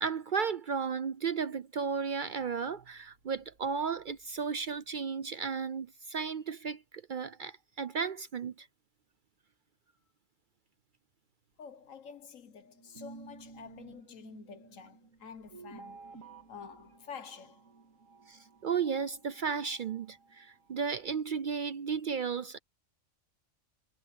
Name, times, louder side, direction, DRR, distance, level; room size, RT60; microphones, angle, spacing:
voice 1, 0.0-8.7 18.3-22.6, right 6 dB, 55° right, 0.6 m, -34 dB
sound 1, 2.4-5.0 5.4-5.5 5.8-5.9 11.5-11.6 11.8-12.1 12.7-21.2, right 4 dB, 90° right, 3.0 m, -55 dB
voice 2, 11.6-16.2 16.5-17.7, left 6 dB, 85° left, 1.6 m, -49 dB
omnidirectional pair, 1.3 m